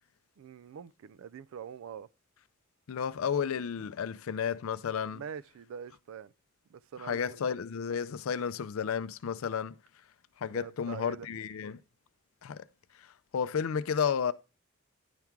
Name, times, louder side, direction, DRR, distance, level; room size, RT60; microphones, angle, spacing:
voice 1, 0.4-2.1 5.1-6.3 6.7-7.5 10.5-11.3, right 7 dB, 80° right, 0.3 m, -44 dB
voice 2, 2.9-5.2 7.0-9.7 10.4-11.8 12.4-12.6 13.0-13.1 13.3-14.3, left 7 dB, 90° left, 0.4 m, -32 dB
10.5 x 3.6 x 4.5 m
head